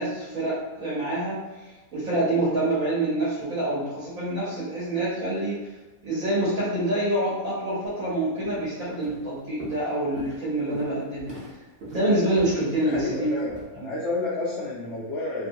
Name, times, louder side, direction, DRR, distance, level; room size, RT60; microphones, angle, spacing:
voice 1, 0.0-5.7 6.0-11.4 11.9-13.3, right 1 dB, 65° right, -10 dB, 1.3 m, -26 dB
Walk footsteps, 7.9-8.1 8.4-8.7 9.0-13.6, right 1 dB, 45° right, 1.0 m, -42 dB
voice 2, 12.8-15.5, left 2 dB, 65° left, -6 dB, 0.7 m, -30 dB
3.0 x 2.7 x 2.5 m, 1.1 s
omnidirectional pair, 1.6 m